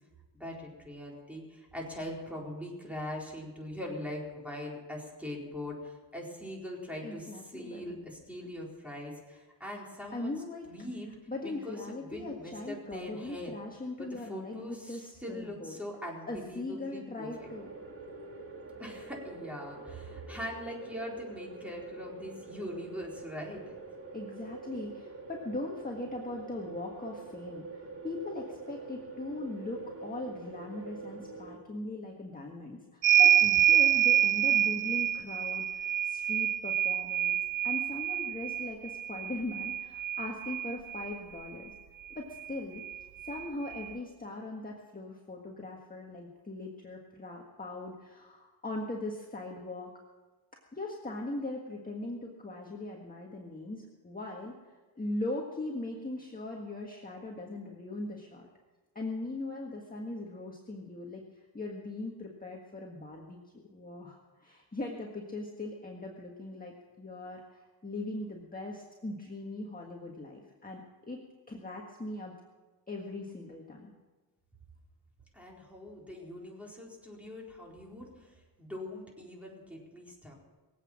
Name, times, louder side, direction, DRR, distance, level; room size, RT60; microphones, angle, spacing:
voice 1, 0.3-10.3 10.7-11.2 11.4-13.5 14.0-17.5 18.8-23.8 75.3-78.3 78.6-80.3, left 1 dB, 5° right, -2 dB, 4.3 m, -42 dB
voice 2, 7.0-8.0 10.1-10.7 11.3-15.8 16.3-17.7 24.1-37.4 37.6-41.7 42.1-42.8 43.2-49.9 50.7-58.5 58.9-71.2 71.5-72.3 72.9-73.9, left 2 dB, 20° left, 0 dB, 1.7 m, -40 dB
sound 1, 17.3-31.6, right 3 dB, 30° right, 2.3 m, -45 dB
sound 2, 33.0-41.1 42.4-42.5 42.8-43.9, right 11 dB, 85° right, 0.9 m, -27 dB
22.5 x 8.4 x 7.4 m, 1.3 s
wide cardioid pair, 125°, 44 cm